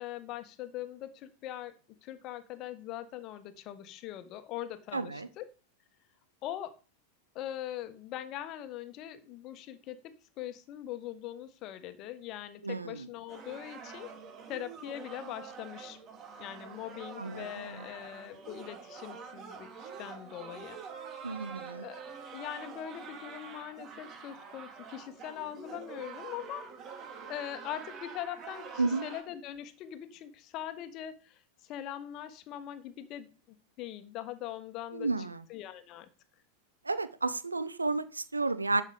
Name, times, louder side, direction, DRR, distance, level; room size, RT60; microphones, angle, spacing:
voice 1, 0.0-1.7 2.0-5.5 6.4-6.7 7.3-14.1 14.5-16.0 16.4-20.8 21.7-22.0 22.3-26.7 27.3-33.3 33.8-35.1 35.5-36.1, left 12 dB, 40° left, 11 dB, 1.5 m, -42 dB
voice 2, 4.9-5.3 12.6-13.1 17.2-17.8 21.2-21.9 28.8-29.1 34.9-35.4 36.8-38.8, right 3 dB, 80° right, 15 dB, 0.8 m, -32 dB
sound 1, 13.3-29.2, right 5 dB, 30° right, 2.5 m, -46 dB
11.5 x 7.4 x 5.1 m, 0.35 s
figure-of-eight pair, 90°, 0 cm